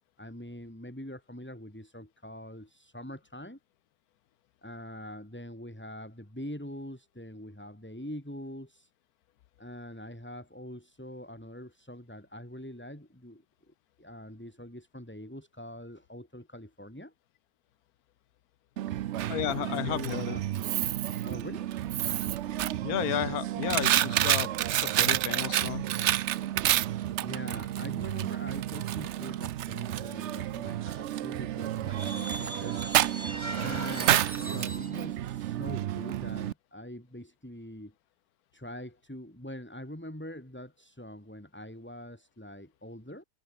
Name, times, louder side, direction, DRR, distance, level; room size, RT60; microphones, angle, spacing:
voice 1, 0.2-3.6 4.6-8.9 9.6-17.1 18.8-19.1 19.5-20.4 21.2-21.7 22.3-22.5 27.2-32.9 33.5-37.9 38.5-43.2, left 1 dB, 5° left, 4.0 m, -44 dB
Coin (dropping), 18.8-36.5, right 12 dB, 85° right, 0.6 m, -30 dB
voice 2, 19.3-20.4 22.8-25.9, left 12 dB, 70° left, 1.0 m, -33 dB
sound 1, 31.9-35.0, right 1 dB, 15° right, 3.5 m, -40 dB
omnidirectional pair, 1.9 m